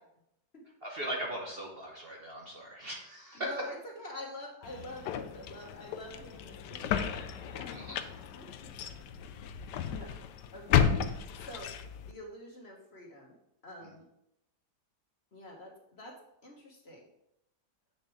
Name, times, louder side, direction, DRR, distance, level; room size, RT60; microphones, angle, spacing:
voice 1, 0.8-3.5 7.7-8.0 13.8-13.9, right 1 dB, 40° right, -1 dB, 1.2 m, -39 dB
voice 2, 3.3-8.0 8.4-8.5 9.9-10.2 10.5-10.9 11.4-11.7 12.1-13.3 13.6-14.0 15.3-16.2 16.4-17.1, left 1 dB, 40° left, -1 dB, 1.5 m, -46 dB
sound 1, 4.6-12.1, left 8 dB, 85° left, 1.2 m, -33 dB
8.3 x 6.5 x 3.5 m, 0.83 s
omnidirectional pair, 1.8 m